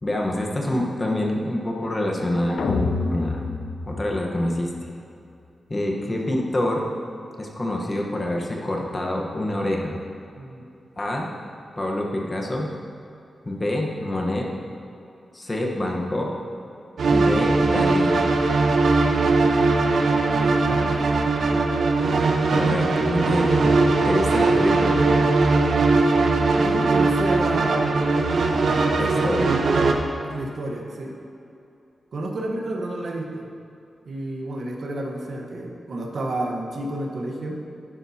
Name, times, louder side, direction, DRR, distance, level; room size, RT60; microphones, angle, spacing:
voice 1, 0.0-3.4 3.9-4.9 5.7-6.9 7.4-10.0 11.0-11.3 11.8-12.7 13.4-14.5 15.3-16.3 17.1-18.2 22.5-23.7 24.0-25.0 29.0-29.6, left 1 dB, 25° left, 0 dB, 1.1 m, -26 dB
sound 1, 2.6-4.9, left 3 dB, 75° left, 0.5 m, -27 dB
voice 2, 10.3-10.7 20.4-21.1 24.7-25.4 26.5-28.2 28.6-29.4 30.3-31.2 32.1-33.5 34.1-37.6, right 1 dB, 60° right, 0 dB, 1.1 m, -31 dB
sound 2, 17.0-29.9, right 3 dB, 80° right, 0.8 m, -20 dB
11.0 x 10.0 x 2.8 m, 2.7 s
wide cardioid pair, 145°, 0 cm